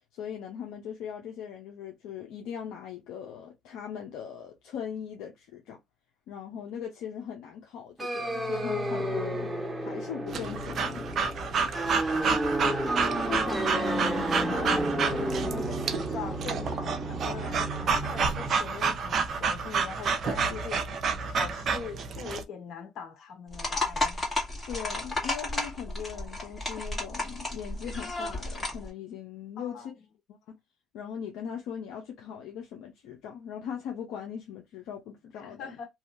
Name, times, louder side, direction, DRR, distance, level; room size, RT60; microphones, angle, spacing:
voice 1, 0.1-5.8 6.3-9.5 9.8-11.1 20.5-20.6 24.7-29.9 30.3-30.6 30.9-35.7, left 8 dB, 80° left, 0.6 m, -39 dB
sound 1, 8.0-18.5, right 1 dB, 10° right, 1.1 m, -31 dB
Breathing / Dog, 10.3-22.4, right 5 dB, 55° right, 0.6 m, -30 dB
voice 2, 12.8-14.0 14.5-20.8 21.2-24.2 29.6-29.9 35.4-35.9, left 6 dB, 65° left, 1.0 m, -41 dB
sound 2, 23.5-28.9, left 2 dB, 30° left, 1.5 m, -32 dB
2.7 x 2.4 x 2.5 m
supercardioid pair, 80°, 0 cm